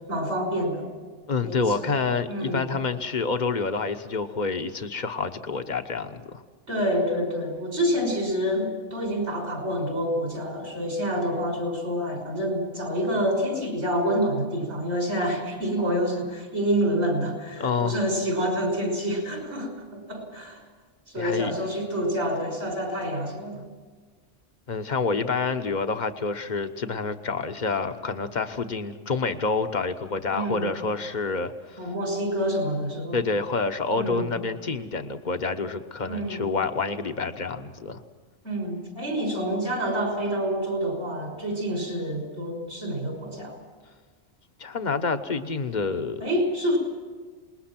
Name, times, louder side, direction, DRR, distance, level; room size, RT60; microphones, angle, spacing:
voice 1, 0.1-0.9 1.4-1.9 2.3-2.6 6.7-20.6 21.1-23.6 30.3-30.6 31.8-33.2 34.0-34.3 36.1-36.4 38.4-43.5 46.2-46.8, equal, 75° right, 1 dB, 6.3 m, -27 dB
voice 2, 1.3-6.4 17.6-18.0 21.2-21.5 23.6-23.7 24.7-31.9 33.1-38.0 44.6-46.2, left 4 dB, 40° left, 8 dB, 1.2 m, -28 dB
27.5 x 21.0 x 6.0 m, 1.5 s
omnidirectional pair, 1.2 m